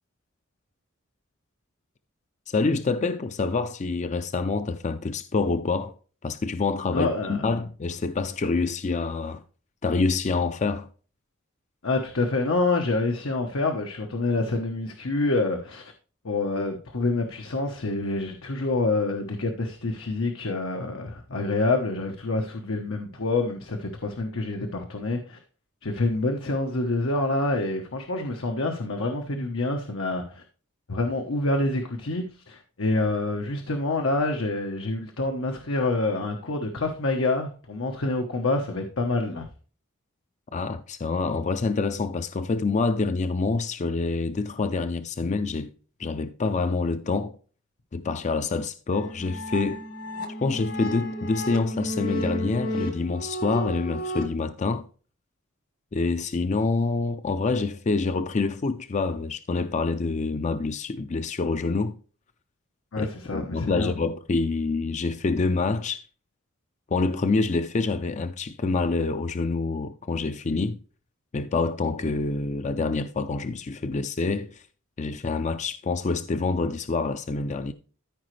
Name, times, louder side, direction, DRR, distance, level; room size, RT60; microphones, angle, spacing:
voice 1, 2.5-6.0 6.2-9.4 9.8-10.9 40.5-45.7 46.0-47.4 47.9-49.8 50.4-54.9 55.9-62.0 63.0-66.1 66.9-70.8 71.3-74.6 75.0-77.7, left 3 dB, 35° left, 0.4 m, -26 dB
voice 2, 6.9-7.5 11.8-15.9 16.2-25.4 25.8-30.4 30.9-39.5 62.9-63.9, left 2 dB, 90° left, 1.1 m, -27 dB
sound 1, 48.9-54.2, equal, 65° left, 1.7 m, -32 dB
13.5 x 5.0 x 3.2 m
head